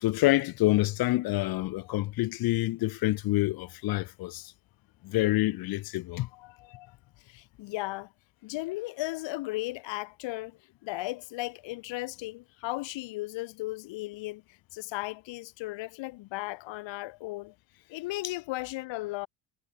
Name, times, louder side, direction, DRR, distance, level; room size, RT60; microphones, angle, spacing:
voice 1, 0.0-4.4 5.0-6.3, left 18 dB, 50° left, 0.8 m, -27 dB
voice 2, 6.2-6.9 7.2-8.1 8.4-14.4 14.7-17.5 17.9-19.3, left 19 dB, 70° left, 2.7 m, -36 dB
cardioid pair, 170°, 47 cm